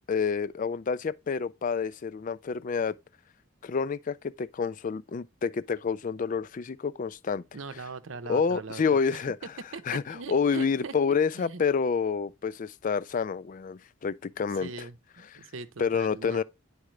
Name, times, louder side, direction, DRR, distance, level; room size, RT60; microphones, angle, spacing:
voice 1, 0.1-3.0 3.6-7.4 8.3-9.4 9.9-14.9 15.8-16.4, left 5 dB, 40° left, 0.3 m, -28 dB
voice 2, 7.5-8.8 9.7-9.8 10.1-10.9 11.3-11.6 14.5-16.4, right 4 dB, 70° right, 0.7 m, -40 dB
10.0 x 4.9 x 3.2 m
head